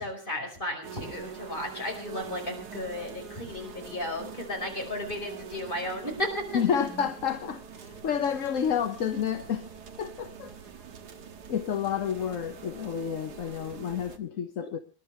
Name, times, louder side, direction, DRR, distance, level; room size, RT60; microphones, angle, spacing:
voice 1, 0.0-6.4 14.6-14.7, left 1 dB, 30° left, 5.3 m, -34 dB
sound 1, 0.8-14.2, right 6 dB, 70° right, 1.8 m, -44 dB
voice 2, 6.5-9.7 10.0-10.5 11.5-14.8, left 8 dB, 55° left, 1.2 m, -30 dB
27.0 x 11.5 x 3.3 m
omnidirectional pair, 1.8 m